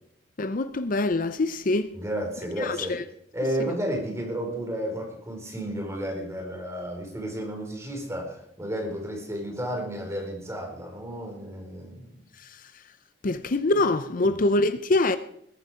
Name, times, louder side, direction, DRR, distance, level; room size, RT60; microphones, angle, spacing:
voice 1, 0.4-1.9 2.6-3.0 3.6-3.7 13.2-15.2, left 2 dB, 50° left, 0.7 m, -24 dB
voice 2, 1.9-3.0 3.3-12.2 14.1-14.4, equal, 15° right, 4.7 m, -32 dB
21.0 x 10.0 x 5.1 m
head